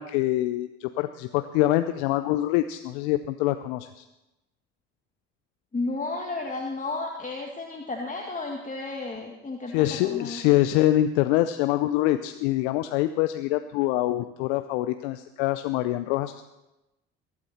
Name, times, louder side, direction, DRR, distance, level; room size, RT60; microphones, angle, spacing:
voice 1, 0.0-3.9 9.7-16.4, left 15 dB, 75° left, 10 dB, 0.7 m, -25 dB
voice 2, 5.7-10.4, left 3 dB, 20° left, 0 dB, 2.0 m, -33 dB
22.0 x 8.9 x 4.3 m, 0.97 s
hypercardioid pair, 55°, 35 cm